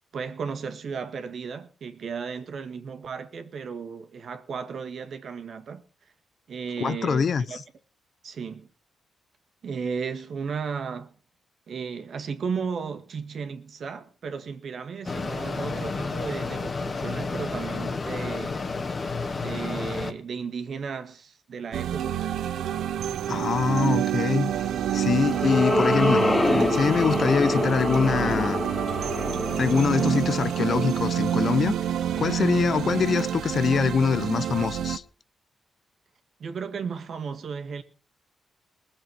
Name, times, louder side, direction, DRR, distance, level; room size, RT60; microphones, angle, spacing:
voice 1, 0.1-5.8 6.5-7.6 8.2-8.7 9.6-11.1 11.7-18.6 19.4-22.2 36.4-37.8, right 6 dB, 60° right, 1.9 m, -34 dB
voice 2, 6.8-7.6 23.3-24.5 24.9-26.3 26.7-28.6 29.6-31.8 32.2-35.0, left 6 dB, 55° left, 0.7 m, -24 dB
Mechanisms, 15.0-20.1, left 4 dB, 35° left, 1.8 m, -31 dB
sound 1, 21.7-35.0, right 10 dB, 80° right, 1.0 m, -28 dB
sound 2, 24.8-31.3, left 2 dB, 20° left, 0.9 m, -27 dB
20.0 x 7.6 x 6.2 m
cardioid pair, 95°, 0 cm